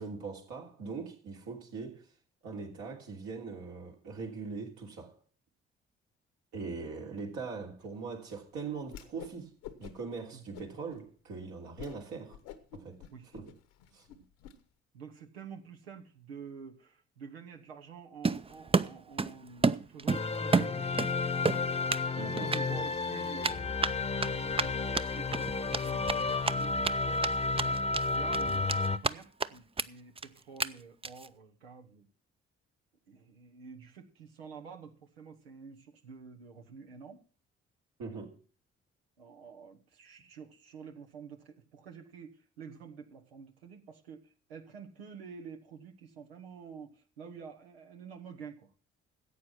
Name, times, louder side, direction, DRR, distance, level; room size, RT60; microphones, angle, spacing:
voice 1, 0.0-2.0 2.4-5.1 6.5-9.5 9.8-12.4 12.7-13.0 13.3-13.5 13.9-14.0 22.2-22.5 38.0-38.3, right 4 dB, 70° right, 3.1 m, -41 dB
Whoosh swoosh swish, 8.8-9.4 9.6-10.2 10.5-11.0 11.4-11.5 11.8-12.0 12.3-14.6, left 10 dB, 75° left, 1.2 m, -48 dB
voice 2, 14.9-21.3 22.0-23.7 24.2-27.2 27.6-32.1 33.1-37.2 39.2-48.7, right 6 dB, 90° right, 1.2 m, -49 dB
Run, 18.2-19.3 19.6-21.1 21.4-22.1 22.4-22.6 23.4-26.9 27.2-27.3 27.6-28.0 28.3-29.1 29.4-29.5 29.8-29.9 30.2-30.3 30.6-30.7 31.0-31.3, right 4 dB, 20° right, 0.6 m, -29 dB
sound 1, 20.1-29.0, left 3 dB, 20° left, 0.9 m, -32 dB
14.0 x 8.3 x 6.0 m
hypercardioid pair, 45°, 30 cm